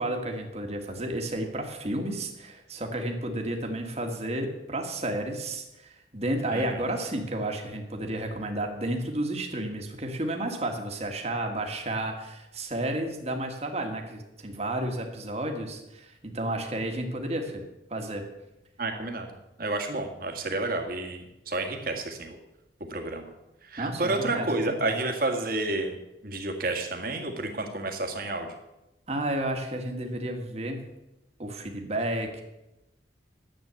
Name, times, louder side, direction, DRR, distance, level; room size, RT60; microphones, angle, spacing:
voice 1, 0.0-18.2 23.8-24.5 24.8-24.9 29.1-30.8 31.4-32.4, right 1 dB, 35° right, 3 dB, 1.8 m, -32 dB
voice 2, 6.5-6.8 18.8-22.4 22.9-23.3 23.6-26.0 26.2-28.6, right 2 dB, 55° right, 3 dB, 1.9 m, -30 dB
10.5 x 8.0 x 8.2 m, 0.95 s
head